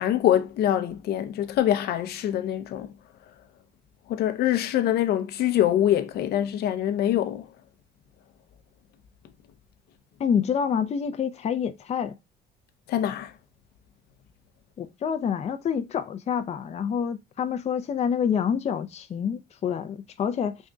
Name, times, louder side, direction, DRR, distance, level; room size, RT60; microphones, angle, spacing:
voice 1, 0.0-2.9 4.1-7.5 12.9-13.3, left 11 dB, 70° left, 0.7 m, -24 dB
voice 2, 10.2-12.2 14.8-20.6, left 7 dB, 40° left, 0.6 m, -27 dB
5.1 x 3.7 x 2.2 m
cardioid pair, 110°, 17 cm